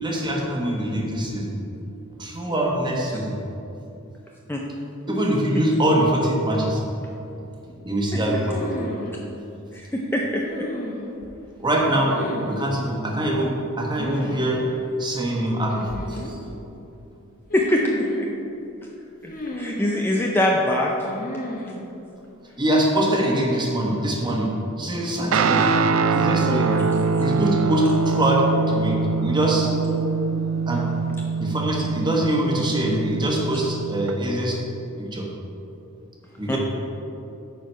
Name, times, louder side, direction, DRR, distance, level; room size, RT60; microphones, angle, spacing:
voice 1, 0.0-1.5 2.2-3.3 5.1-6.8 7.8-8.6 11.6-14.7 15.0-16.4 22.6-24.5 24.8-25.6 26.1-26.7 27.2-29.7 30.7-30.8 31.4-34.6 35.0-35.3 36.4-36.6, right 1 dB, 20° right, -2 dB, 1.2 m, -23 dB
sound 1, 8.4-9.2 10.5-11.3 11.9-12.7 14.0-14.4 14.7-14.8 15.7-16.4 17.5-18.3 19.3-20.1 21.1-21.8, left 1 dB, 40° left, 1.0 m, -32 dB
voice 2, 9.7-10.6 17.5-18.3 19.2-21.1 25.3-25.7 26.5-27.1 36.5-36.6, left 1 dB, 10° left, -1 dB, 0.5 m, -24 dB
Guitar, 25.3-34.1, right 5 dB, 65° right, 0.4 m, -23 dB
9.0 x 4.6 x 5.5 m, 2.9 s
head